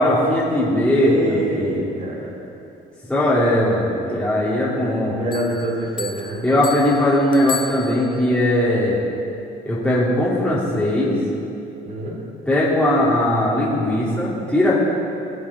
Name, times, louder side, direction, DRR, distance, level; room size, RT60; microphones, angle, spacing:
voice 1, 0.0-1.9 3.1-5.1 6.4-9.0 9.6-11.2 12.5-14.7, left 1 dB, 5° left, -10 dB, 2.8 m, -19 dB
voice 2, 1.0-2.3 5.1-6.5 11.8-12.2, right 1 dB, 45° right, -1 dB, 2.7 m, -26 dB
Bell, 5.3-8.4, left 4 dB, 30° left, 0.8 m, -34 dB
20.0 x 7.5 x 4.2 m, 2.7 s
cardioid pair, 110°, 17 cm